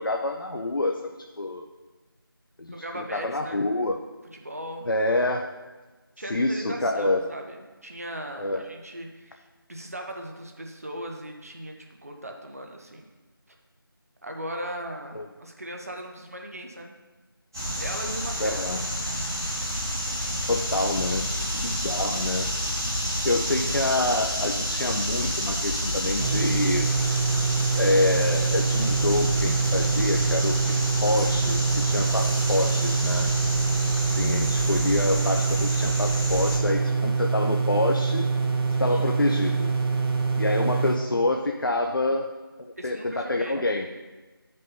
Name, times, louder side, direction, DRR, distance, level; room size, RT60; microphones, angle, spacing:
voice 1, 0.0-1.6 2.6-4.0 4.9-5.5 6.3-7.3 8.4-8.6 15.1-15.2 18.4-18.8 20.5-21.3 21.5-22.5 23.2-27.3 27.7-30.8 31.0-33.3 34.1-38.3 38.8-39.7 40.4-42.3 42.6-43.9, left 2 dB, 60° left, 3 dB, 0.5 m, -27 dB
voice 2, 2.7-3.6 4.3-4.9 6.2-9.4 9.7-13.1 14.2-16.9 17.8-18.6 21.8-22.2 38.8-39.1 42.8-43.6, equal, 40° right, 2 dB, 0.7 m, -38 dB
sound 1, 17.5-36.6, equal, 10° right, 1.0 m, -29 dB
sound 2, 26.2-41.0, right 4 dB, 85° right, 1.5 m, -25 dB
11.0 x 5.3 x 2.7 m, 1.2 s
figure-of-eight pair, 175°, 12 cm